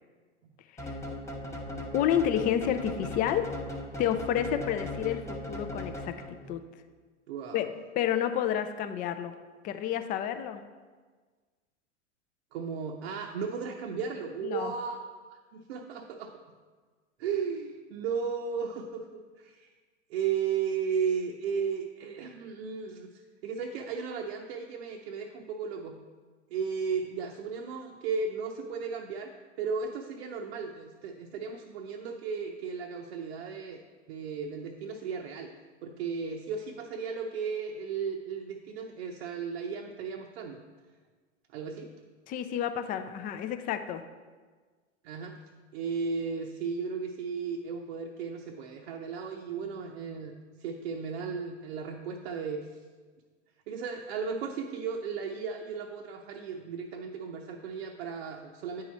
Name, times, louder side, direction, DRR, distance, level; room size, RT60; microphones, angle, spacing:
sound 1, 0.8-6.5, left 1 dB, 10° left, 0.9 m, -38 dB
voice 1, 1.9-3.4 4.0-6.6 7.5-7.7 8.0-9.3 9.6-10.6 14.4-14.7 42.3-44.0, left 10 dB, 25° left, 9 dB, 0.4 m, -30 dB
voice 2, 7.3-7.7 12.5-15.0 15.5-16.3 17.2-19.7 20.1-26.0 26.5-29.3 29.6-35.5 35.8-40.6 41.5-41.9 45.0-45.4 45.7-50.3 50.6-52.7 53.7-58.8, right 6 dB, 60° right, 1 dB, 0.7 m, -35 dB
9.1 x 4.7 x 4.1 m, 1.4 s
hypercardioid pair, 105°, 36 cm